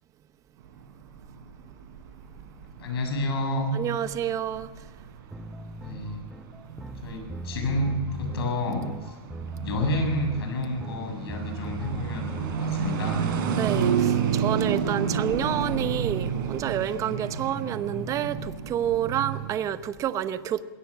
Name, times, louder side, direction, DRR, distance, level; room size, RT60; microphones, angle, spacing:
sound 1, 0.6-19.6, right 7 dB, 55° right, 4.6 m, -31 dB
voice 1, 2.8-3.7 5.8-6.2 7.0-9.2 9.5-13.3, left 1 dB, 70° left, 7.3 m, -29 dB
voice 2, 3.7-4.7 13.5-20.6, right 10 dB, 25° right, 0.9 m, -29 dB
sound 2, 5.3-13.2, right 3 dB, 5° right, 0.5 m, -39 dB
21.0 x 17.5 x 7.3 m
hypercardioid pair, 140°, 13 cm